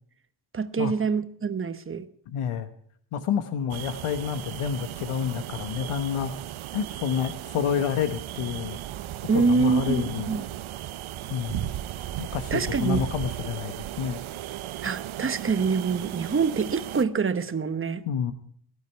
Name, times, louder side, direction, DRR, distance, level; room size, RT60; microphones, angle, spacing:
voice 1, 0.5-2.1 9.3-10.4 12.5-13.0 14.8-18.0, right 5 dB, 25° right, 11 dB, 1.0 m, -25 dB
voice 2, 2.3-2.7 3.1-6.3 6.7-8.8 9.3-10.3 11.3-11.7 12.2-14.2 18.1-18.3, left 8 dB, 90° left, 10 dB, 1.3 m, -29 dB
sound 1, 3.7-17.0, right 13 dB, 70° right, 0.8 m, -36 dB
18.0 x 12.0 x 4.6 m, 0.63 s
wide cardioid pair, 140°, 50 cm